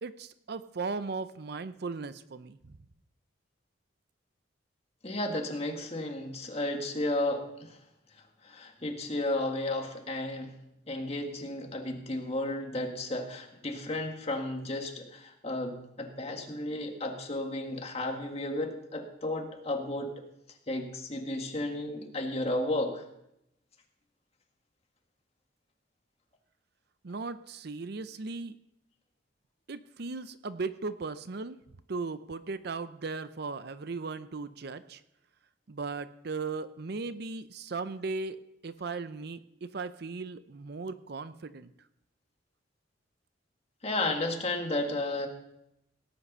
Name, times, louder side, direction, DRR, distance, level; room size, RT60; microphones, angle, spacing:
voice 1, 0.0-2.8 27.0-28.6 29.7-31.6 31.9-35.0 35.7-41.7, right 4 dB, 60° right, 13 dB, 0.6 m, -37 dB
voice 2, 5.0-7.8 8.4-10.5 10.9-20.1 20.7-23.0 43.8-45.3, left 1 dB, 35° left, 3 dB, 1.9 m, -33 dB
18.0 x 8.7 x 5.5 m, 0.82 s
head